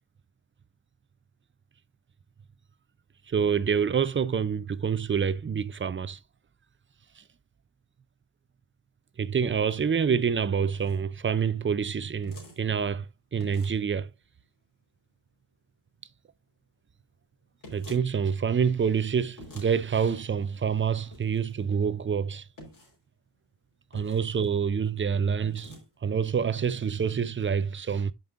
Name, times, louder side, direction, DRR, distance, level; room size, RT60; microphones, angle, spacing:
voice 1, 3.3-6.2 7.2-7.3 9.2-13.1 13.3-14.1 17.7-22.5 23.9-25.7 26.0-28.1, right 6 dB, 30° right, 0.4 m, -27 dB
sound 1, 9.5-9.8 10.6-11.0 12.2-12.6 13.4-13.9 17.6-18.1 19.4-19.7 21.1-21.5 22.6-23.0 23.9-24.5 25.4-25.8, equal, 50° left, 4.1 m, -47 dB
13.5 x 5.4 x 2.4 m
wide cardioid pair, 180°, 42 cm